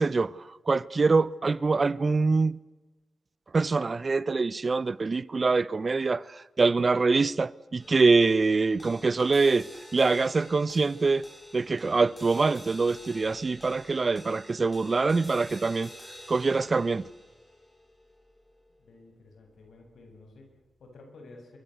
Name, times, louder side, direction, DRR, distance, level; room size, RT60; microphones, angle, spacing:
voice 1, 0.0-2.6 3.5-9.7 9.9-11.2 11.5-15.9 16.3-17.1, right 4 dB, 40° right, 0.8 m, -24 dB
sound 1, 7.8-20.3, left 1 dB, 10° left, 7.3 m, -50 dB
voice 2, 18.8-21.6, left 2 dB, 80° left, 7.9 m, -52 dB
26.0 x 24.0 x 8.1 m
cardioid pair, 80°, 0 cm